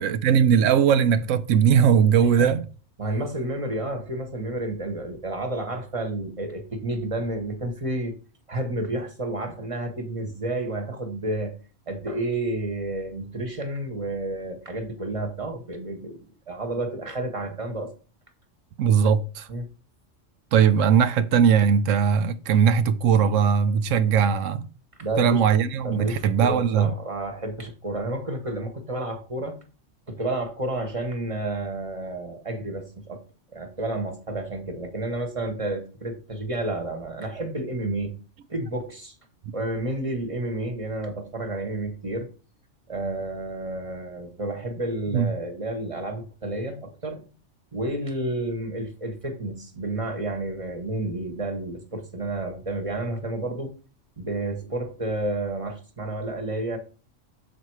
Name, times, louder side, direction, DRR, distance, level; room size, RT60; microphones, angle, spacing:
voice 1, 0.0-2.6 18.8-19.5 20.5-24.7 25.2-26.9 45.1-45.3, right 7 dB, 85° right, 1.0 m, -19 dB
voice 2, 2.2-2.5 3.0-8.1 8.5-11.5 11.9-17.9 19.5-19.7 25.0-25.4 25.8-29.6 30.1-33.2 33.5-38.1 38.5-39.1 39.5-42.3 42.9-47.2 47.7-53.7 54.2-56.8, right 2 dB, 30° right, 1.2 m, -30 dB
7.0 x 4.2 x 4.6 m
omnidirectional pair, 1.3 m